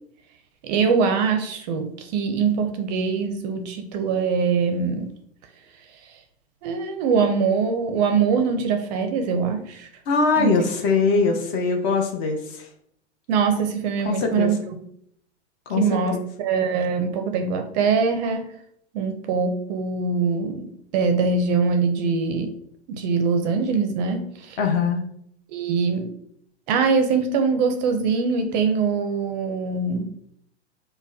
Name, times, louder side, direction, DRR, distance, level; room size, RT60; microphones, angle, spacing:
voice 1, 0.6-5.1 6.6-9.9 10.4-10.7 13.3-14.6 15.8-18.5 18.9-22.5 22.9-24.6 25.5-26.1 26.7-30.1, right 5 dB, 40° right, 6 dB, 0.5 m, -23 dB
voice 2, 10.1-12.7 14.0-14.5 15.7-15.8 16.1-16.2 24.6-25.0, left 4 dB, 35° left, 4 dB, 0.8 m, -22 dB
5.3 x 2.2 x 2.6 m, 0.68 s
hypercardioid pair, 115°, 35 cm